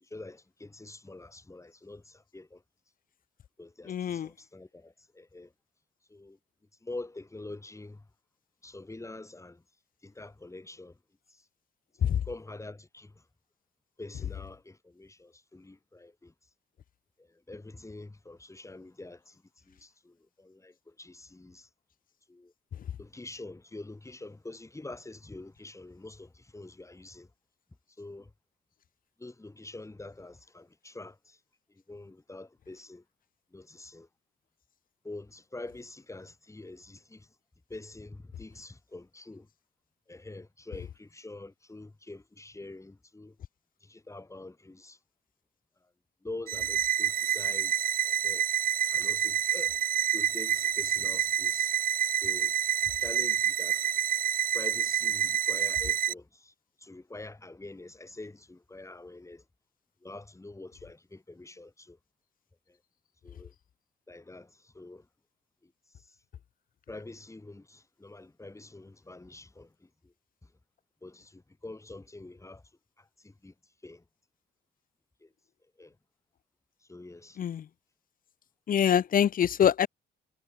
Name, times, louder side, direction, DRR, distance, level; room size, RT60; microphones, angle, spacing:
voice 1, 0.0-2.6 3.6-5.5 6.1-6.4 6.8-8.1 8.6-9.6 10.0-11.0 11.3-11.4 12.2-13.2 14.0-16.3 17.2-21.7 22.3-22.5 23.0-27.3 28.0-28.3 29.2-31.4 31.7-33.0 33.5-34.1 35.0-37.3 37.7-39.5 40.1-43.4 43.8-45.0 46.2-48.5 48.9-49.8 50.1-51.7 52.1-52.5 53.0-53.8 54.5-59.4 60.0-62.0 62.7-62.8 63.2-63.5 64.1-65.1 65.6-65.7 66.0-66.1 66.9-70.1 70.4-70.5 71.0-72.6 73.0-73.5 73.8-74.0 75.2-75.3 75.8-76.0 76.8-77.4, left 2 dB, 15° left, 3.2 m, -46 dB
voice 2, 3.9-4.3 77.4-77.6 78.7-79.9, left 9 dB, 45° left, 0.6 m, -24 dB
sound 1, 46.5-56.1, right 10 dB, 45° right, 0.4 m, -28 dB
cardioid pair, 90°, 20 cm